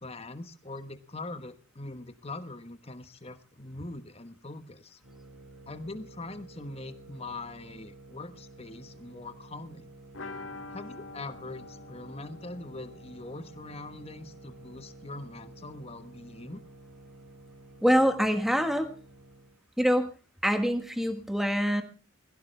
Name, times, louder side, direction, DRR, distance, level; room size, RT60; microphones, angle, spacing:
voice 1, 0.0-5.0 5.7-9.9 10.7-16.6, left 2 dB, 30° left, 9 dB, 1.2 m, -42 dB
sound 1, 5.0-19.6, right 2 dB, 70° right, 6.4 m, -51 dB
sound 2, 10.1-15.8 16.0-16.1 16.4-16.5, left 3 dB, 65° left, 2.4 m, -47 dB
voice 2, 17.8-18.9 19.8-20.1 20.4-21.8, equal, ahead, 7 dB, 1.5 m, -25 dB
21.0 x 15.5 x 3.4 m, 0.34 s
head